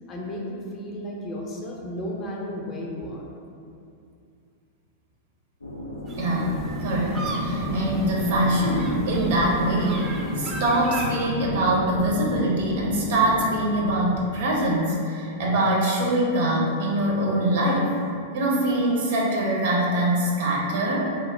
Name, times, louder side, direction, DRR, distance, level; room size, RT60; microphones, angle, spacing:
voice 1, 0.1-3.2, left 1 dB, 35° left, -1 dB, 0.5 m, -33 dB
sound 1, 5.6-13.6, left 1 dB, 90° left, 0.4 m, -33 dB
sound 2, 6.1-11.2, right 2 dB, 25° right, 0.4 m, -34 dB
voice 2, 6.2-17.9 18.3-21.0, right 1 dB, 65° right, -3 dB, 0.6 m, -23 dB
sound 3, 6.5-12.1 12.4-14.6, equal, 85° right, 1.0 m, -34 dB
2.9 x 2.0 x 3.4 m, 2.4 s
hypercardioid pair, 100°, 0 cm